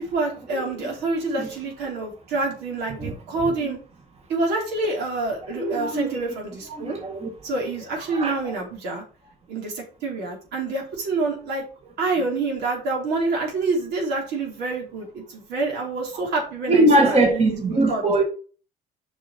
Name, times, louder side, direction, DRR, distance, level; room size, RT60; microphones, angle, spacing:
voice 1, 0.1-3.8 4.3-7.0 7.4-9.0 9.5-11.6 12.0-18.0, right 3 dB, 80° right, 3.6 m, -27 dB
voice 2, 5.5-6.1 6.7-7.3 8.1-8.3 16.7-18.2, right 1 dB, 35° right, 1.9 m, -21 dB
7.2 x 5.7 x 4.4 m
cardioid pair, 110°, 17 cm